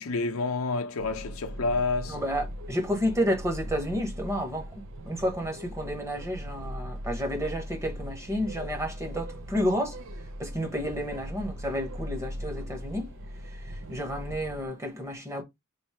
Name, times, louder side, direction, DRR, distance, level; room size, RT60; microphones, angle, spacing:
voice 1, 0.0-2.2, left 3 dB, 70° left, 0.6 m, -29 dB
sound 1, 1.0-14.7, equal, 60° right, 0.6 m, -39 dB
voice 2, 2.0-10.0 10.4-13.1 13.5-15.4, equal, 15° right, 1.1 m, -31 dB
3.2 x 2.6 x 4.3 m
head